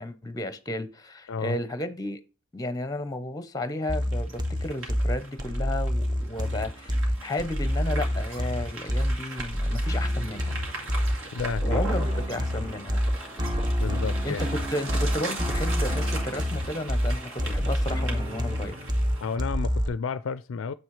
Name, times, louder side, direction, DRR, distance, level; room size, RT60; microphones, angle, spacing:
voice 1, 0.0-2.2 2.5-10.6 11.6-13.0 14.2-18.8, left 1 dB, 15° left, 0.8 m, -33 dB
voice 2, 1.3-1.6 11.3-11.8 13.8-14.4 19.2-20.7, left 5 dB, 60° left, 0.4 m, -31 dB
sound 1, 3.9-19.9, equal, 20° right, 0.7 m, -27 dB
sound 2, 3.9-19.3, right 2 dB, 65° right, 2.2 m, -40 dB
7.5 x 6.1 x 3.2 m
head